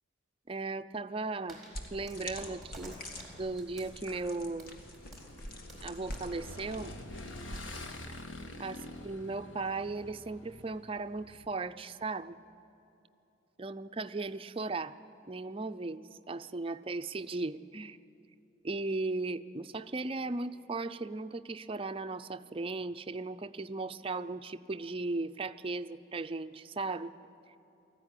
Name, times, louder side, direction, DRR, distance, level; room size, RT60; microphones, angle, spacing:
voice 1, 0.5-1.6 1.9-3.0 3.4-4.8 5.8-6.9 8.6-8.8 9.0-12.4 13.6-15.0 15.2-18.0 18.6-27.1, right 3 dB, 30° right, 10 dB, 0.5 m, -37 dB
sound 1, 1.5-7.3, right 1 dB, ahead, 4.0 m, -52 dB
sound 2, 1.7-7.9, left 1 dB, 50° left, 1.7 m, -46 dB
Motorcycle / Engine, 4.5-11.5, left 1 dB, 75° left, 1.5 m, -47 dB
19.0 x 14.5 x 9.9 m, 2.9 s
head